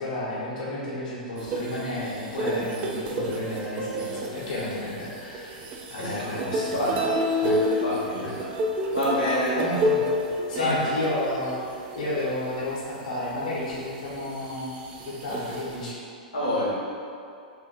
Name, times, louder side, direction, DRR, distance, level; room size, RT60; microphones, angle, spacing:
voice 1, 0.0-7.0 7.4-7.8 8.2-8.5 9.5-10.0 10.5-14.7 15.1-16.0, left 1 dB, 60° left, -7 dB, 0.9 m, -32 dB
sound 1, 1.4-12.7 13.2-13.3 13.7-15.9, equal, 30° right, 0.4 m, -30 dB
voice 2, 7.8-8.3 8.9-9.6 10.5-10.8 16.3-16.7, equal, 90° left, -8 dB, 0.8 m, -26 dB
2.5 x 2.5 x 3.8 m, 2.4 s
hypercardioid pair, 105°, 4 cm